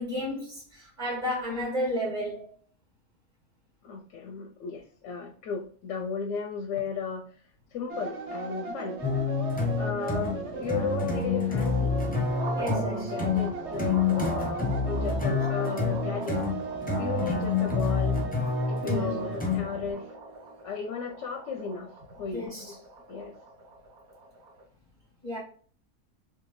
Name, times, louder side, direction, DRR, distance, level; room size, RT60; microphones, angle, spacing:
voice 1, 0.0-2.4 12.5-13.1 18.8-19.1 22.3-22.7 25.2-25.4, left 1 dB, 35° right, 1.6 m, -32 dB
voice 2, 3.8-7.2 7.7-9.0 9.8-11.9 12.7-16.4 17.0-18.2 18.7-20.1 20.6-21.9 22.2-22.8 23.1-23.3, left 6 dB, 70° left, 0.8 m, -35 dB
sound 1, 7.9-20.7, right 4 dB, 60° right, 1.0 m, -37 dB
sound 2, 9.0-19.9, left 4 dB, 15° left, 0.3 m, -28 dB
sound 3, 12.4-24.6, right 2 dB, 75° right, 1.2 m, -43 dB
3.6 x 3.1 x 3.0 m
omnidirectional pair, 1.5 m